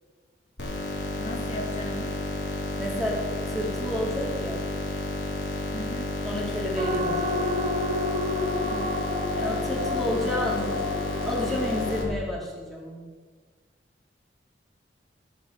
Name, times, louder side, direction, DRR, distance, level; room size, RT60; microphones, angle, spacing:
sound 1, 0.6-12.0, left 1 dB, 70° left, 4.7 m, -31 dB
voice 1, 1.2-2.1 5.7-6.1 8.6-9.0, equal, 35° left, 1 dB, 2.0 m, -37 dB
voice 2, 2.8-4.6 6.2-7.4 9.4-10.9 11.3-13.0, left 1 dB, ahead, -5 dB, 4.4 m, -31 dB
sound 2, 6.8-12.0, left 2 dB, 30° right, 2.6 m, -30 dB
17.0 x 8.1 x 8.0 m, 1.5 s
head